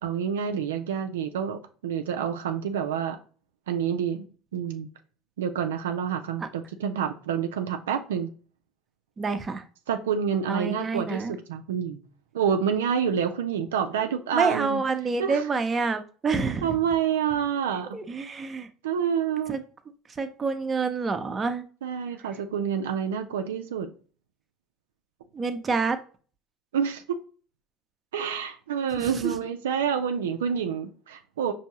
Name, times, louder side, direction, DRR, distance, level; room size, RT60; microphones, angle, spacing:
voice 1, 0.0-3.2 3.7-4.3 4.5-4.9 5.4-8.3 9.9-12.0 12.3-14.8 15.2-15.5 16.6-17.9 18.8-19.6 21.8-23.9 26.7-27.0 28.1-31.5, right 8 dB, 85° right, 0.4 m, -28 dB
voice 2, 9.2-9.6 10.5-11.3 14.3-16.8 17.9-18.7 19.5-19.6 20.2-21.6 25.3-26.0 29.0-29.3, right 4 dB, 30° right, 0.6 m, -27 dB
5.2 x 2.7 x 2.8 m
hypercardioid pair, 75°, 0 cm